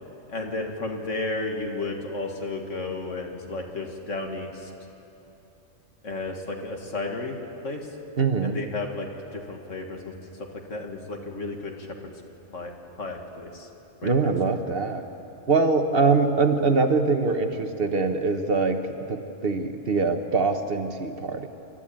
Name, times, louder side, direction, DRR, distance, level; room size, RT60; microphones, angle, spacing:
voice 1, 0.3-4.7 6.0-7.4 7.6-7.9 8.4-10.1 10.7-12.1 12.5-12.7 13.0-13.7 14.0-14.1, left 2 dB, 75° left, 2 dB, 2.3 m, -33 dB
voice 2, 8.2-8.6 14.0-15.1 15.5-21.5, right 4 dB, 50° right, 6 dB, 1.3 m, -23 dB
29.0 x 12.5 x 8.7 m, 2.9 s
omnidirectional pair, 1.3 m